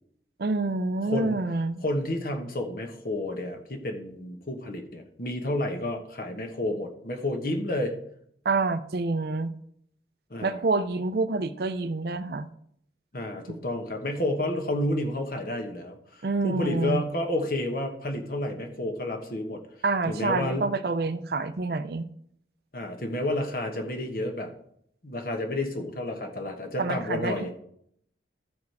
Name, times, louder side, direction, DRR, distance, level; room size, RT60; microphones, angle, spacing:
voice 1, 0.4-1.8 8.4-9.5 10.4-12.5 13.5-13.6 16.2-17.0 19.8-22.1 26.8-27.6, right 3 dB, 55° right, 12 dB, 0.5 m, -27 dB
voice 2, 1.1-1.4 1.8-7.9 10.3-10.6 13.1-19.6 20.1-20.7 22.7-24.5 25.0-27.5, left 1 dB, 50° left, 4 dB, 1.2 m, -30 dB
13.5 x 4.8 x 4.7 m, 0.71 s
head